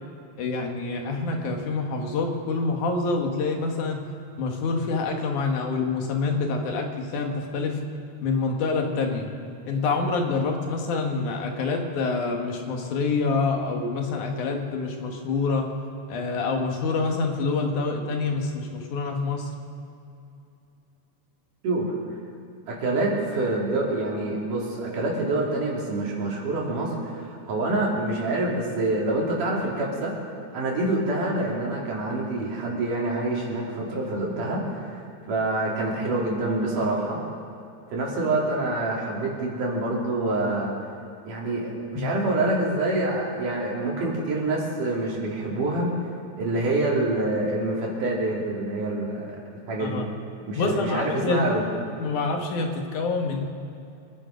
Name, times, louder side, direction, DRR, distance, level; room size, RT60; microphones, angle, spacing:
voice 1, 0.4-4.1 4.4-7.8 8.2-9.3 9.7-15.8 16.1-19.5 42.0-42.1 49.8-50.0 50.6-51.5 52.0-53.5, left 4 dB, 75° left, 2 dB, 3.0 m, -26 dB
voice 2, 22.7-30.2 30.5-35.0 35.3-37.2 37.9-40.7 41.2-45.9 46.4-49.4 49.7-50.0 50.5-51.6, right 2 dB, 85° right, -3 dB, 4.4 m, -26 dB
25.0 x 10.5 x 5.1 m, 2.7 s
omnidirectional pair, 3.6 m